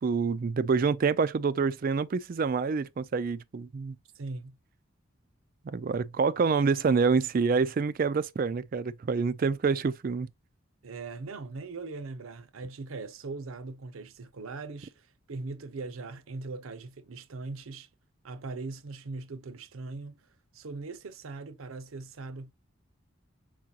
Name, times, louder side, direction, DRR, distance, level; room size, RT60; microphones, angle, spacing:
voice 1, 0.0-3.9 5.6-10.3, right 5 dB, 45° right, 0.3 m, -27 dB
voice 2, 4.2-4.6 10.8-17.9 18.2-20.3 20.5-22.5, right 3 dB, 85° right, 0.6 m, -40 dB
4.6 x 3.8 x 2.8 m
head